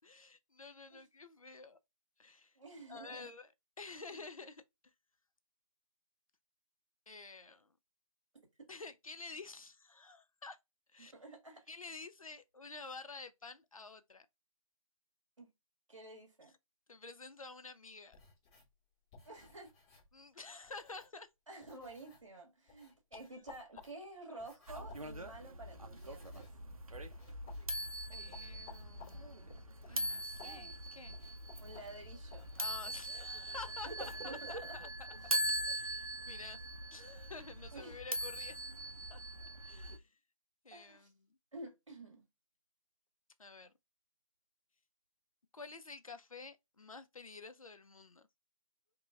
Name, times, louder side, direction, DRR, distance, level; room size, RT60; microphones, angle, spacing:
voice 1, 0.0-1.8 2.2-2.5 2.9-3.5 3.8-4.6 7.1-7.7 8.7-10.6 10.9-11.1 11.7-14.3 16.9-18.2 20.1-21.3 28.1-31.2 32.6-35.1 35.6-36.6 36.9-38.6 39.1-39.2 39.6-40.1 40.6-41.1 43.4-43.7 45.5-48.3, left 3 dB, 75° left, 0.5 m, -50 dB
voice 2, 2.5-3.3 4.1-4.2 11.0-11.6 15.4-15.5 15.9-16.5 19.2-19.7 21.5-26.5 31.6-32.5 33.8-33.9 34.2-34.8 35.1-35.4 37.7-38.0 40.7-41.1 41.5-42.2, right 2 dB, 60° right, 1.5 m, -51 dB
sound 1, 18.1-21.3 21.6-22.4 22.7-33.9, left 6 dB, 5° left, 0.7 m, -61 dB
sound 2, 24.7-40.0, right 1 dB, 75° right, 0.6 m, -41 dB
3.0 x 3.0 x 2.3 m
figure-of-eight pair, 160°, 18 cm